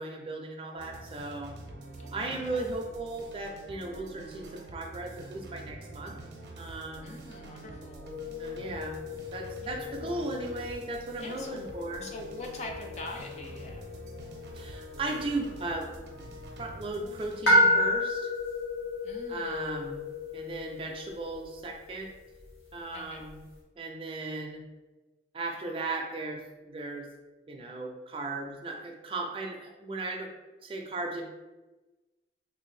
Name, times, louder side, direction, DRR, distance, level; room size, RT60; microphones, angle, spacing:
voice 1, 0.0-1.5 2.1-6.2 6.6-7.2 8.4-9.0 9.3-12.1 14.5-15.9 16.6-18.3 19.3-20.1 20.3-22.1 22.7-23.4 23.8-24.6 25.3-27.1 27.5-30.3 30.6-31.3, right 2 dB, 30° right, 2 dB, 0.4 m, -36 dB
sound 1, 0.8-17.4, right 2 dB, 80° right, 0.6 m, -46 dB
voice 2, 1.9-2.7 7.0-8.2 9.6-10.4 11.2-11.7 12.0-13.9 19.0-19.9 22.9-23.2, left 2 dB, 40° left, 2 dB, 0.4 m, -44 dB
sound 2, 8.0-23.5, left 1 dB, 70° left, 1.2 m, -33 dB
3.4 x 2.4 x 3.2 m, 1.1 s
head